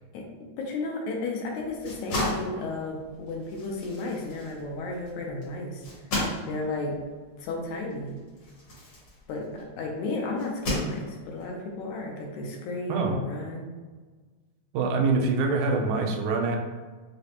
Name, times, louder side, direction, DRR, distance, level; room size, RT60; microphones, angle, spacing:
voice 1, 0.6-5.8 6.4-7.0 7.4-8.2 9.3-13.7, left 2 dB, 80° left, 0 dB, 2.0 m, -33 dB
sound 1, 1.6-9.7 10.4-11.4, left 1 dB, 55° left, 1.6 m, -35 dB
voice 2, 14.7-16.6, right 4 dB, 85° right, 3 dB, 1.9 m, -25 dB
4.9 x 2.1 x 2.8 m, 1.4 s
omnidirectional pair, 3.4 m